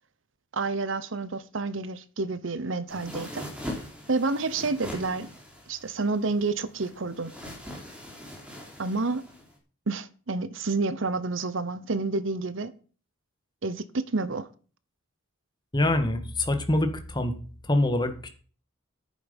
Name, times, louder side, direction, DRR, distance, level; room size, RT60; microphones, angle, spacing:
voice 1, 0.5-3.4 4.1-5.3 5.7-7.3 8.8-9.2 9.9-12.7 13.6-14.5, right 3 dB, 65° right, 0.9 m, -29 dB
sound 1, 2.9-9.5, left 1 dB, 5° right, 3.8 m, -41 dB
voice 2, 15.7-17.3 17.6-18.3, left 1 dB, 20° left, 1.8 m, -25 dB
11.0 x 9.4 x 5.4 m
head